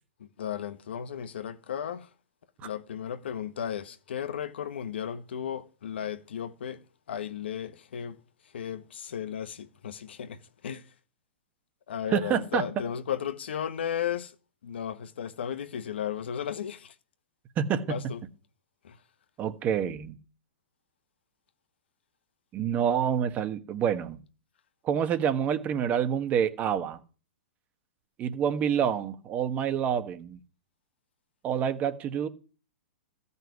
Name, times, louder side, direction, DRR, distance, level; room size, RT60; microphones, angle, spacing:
voice 1, 0.2-2.1 2.6-10.9 11.9-14.4 14.6-16.9 17.9-18.3 18.8-19.0, left 9 dB, 80° left, 1.2 m, -35 dB
voice 2, 12.1-12.6 17.6-18.0 19.4-20.2 22.5-24.2 24.8-27.0 28.2-30.4 31.4-32.3, right 8 dB, 25° right, 1.3 m, -27 dB
14.0 x 5.5 x 9.4 m
hypercardioid pair, 140°, 6 cm